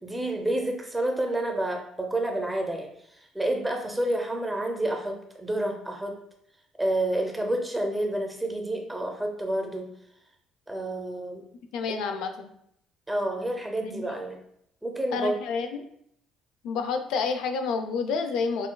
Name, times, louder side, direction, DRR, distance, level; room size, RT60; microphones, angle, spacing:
voice 1, 0.0-2.9 3.3-6.2 6.8-9.9 10.7-11.4 13.1-14.4 14.8-15.4, right 1 dB, 5° right, 2 dB, 0.6 m, -29 dB
voice 2, 11.7-12.5 13.8-14.2 15.1-15.8 16.6-18.7, left 5 dB, 75° left, 7 dB, 0.3 m, -29 dB
5.9 x 2.2 x 2.2 m, 0.72 s
cardioid pair, 120°, 0 cm